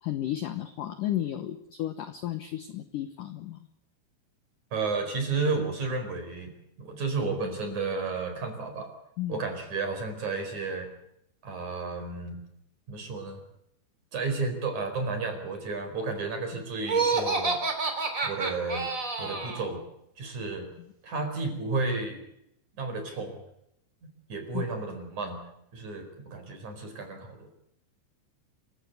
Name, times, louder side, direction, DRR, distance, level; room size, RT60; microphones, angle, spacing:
voice 1, 0.0-3.7 9.2-9.4 24.5-24.7, left 12 dB, 80° left, 10 dB, 1.9 m, -33 dB
voice 2, 4.7-6.5 6.8-8.9 9.3-10.9 11.4-12.4 12.9-13.4 14.1-17.6 18.2-18.9 19.2-19.8 20.2-20.7 21.0-22.2 22.8-23.4 24.3-25.4 25.7-27.5, right 3 dB, 40° right, 5 dB, 5.6 m, -32 dB
Laughter, 16.8-19.7, right 4 dB, 20° right, 2.7 m, -28 dB
26.5 x 16.0 x 8.2 m, 0.78 s
omnidirectional pair, 5.5 m